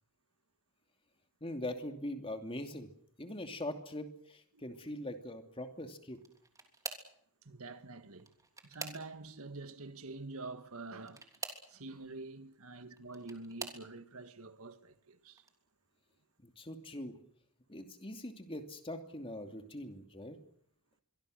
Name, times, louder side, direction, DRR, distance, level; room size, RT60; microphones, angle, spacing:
voice 1, 1.4-2.9 3.2-6.2 16.4-17.1 17.7-20.4, left 1 dB, 25° left, 2.6 m, -42 dB
sound 1, 6.1-7.2 8.1-9.4 11.0-11.7 12.8-13.9 14.6-15.0 15.4-15.5 16.9-17.0, right 3 dB, 15° right, 3.3 m, -46 dB
voice 2, 7.5-8.3 8.6-11.2 11.7-15.4, right 3 dB, 70° right, 1.7 m, -47 dB
26.5 x 23.5 x 6.6 m
head